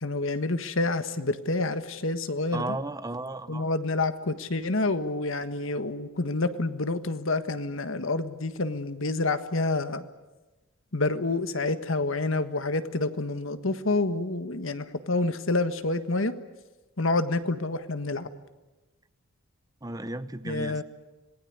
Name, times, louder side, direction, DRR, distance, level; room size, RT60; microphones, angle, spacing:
voice 1, 0.0-2.7 3.5-10.1 10.9-16.3 17.0-18.3 20.4-20.8, left 2 dB, 65° left, 11 dB, 1.6 m, -28 dB
voice 2, 2.5-3.7 19.8-20.8, right 2 dB, 15° right, 13 dB, 0.8 m, -34 dB
26.5 x 19.5 x 9.4 m, 1.1 s
head